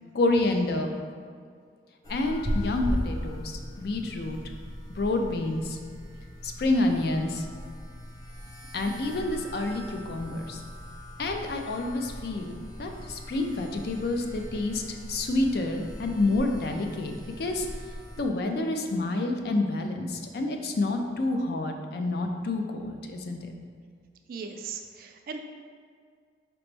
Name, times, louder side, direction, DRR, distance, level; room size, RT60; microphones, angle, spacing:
voice 1, 0.1-0.9 2.1-4.4 5.0-5.8 6.4-7.4 8.7-10.6 11.2-17.7 18.2-23.5, left 2 dB, 55° left, 4 dB, 0.4 m, -28 dB
sound 1, 2.0-18.2, equal, 20° left, 0.6 m, -38 dB
voice 2, 24.3-25.4, right 5 dB, 50° right, 5 dB, 0.3 m, -38 dB
5.0 x 3.0 x 3.3 m, 2.1 s
head